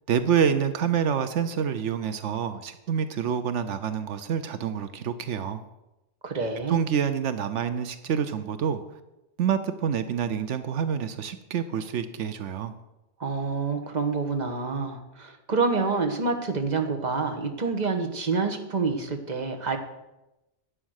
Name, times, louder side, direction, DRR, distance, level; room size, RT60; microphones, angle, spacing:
voice 1, 0.1-5.6 6.7-8.8 9.4-12.7, right 7 dB, 85° right, 11 dB, 1.1 m, -27 dB
voice 2, 6.2-6.8 13.2-19.8, right 4 dB, 40° right, 5 dB, 1.4 m, -27 dB
11.0 x 8.5 x 6.5 m, 0.96 s
omnidirectional pair, 1.2 m